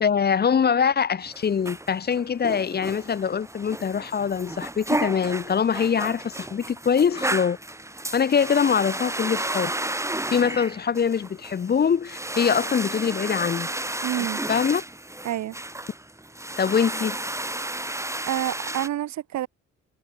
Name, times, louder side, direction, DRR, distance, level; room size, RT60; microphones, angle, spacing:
voice 1, 0.0-7.6 8.1-9.7 10.3-13.7 14.2-14.8 16.6-17.2, left 7 dB, 35° left, 0.7 m, -23 dB
sound 1, 1.2-18.9, right 1 dB, 10° right, 2.7 m, -32 dB
voice 2, 14.0-14.4 15.2-15.5 18.3-19.5, right 13 dB, 65° right, 1.1 m, -28 dB
cardioid pair, 90°, 30 cm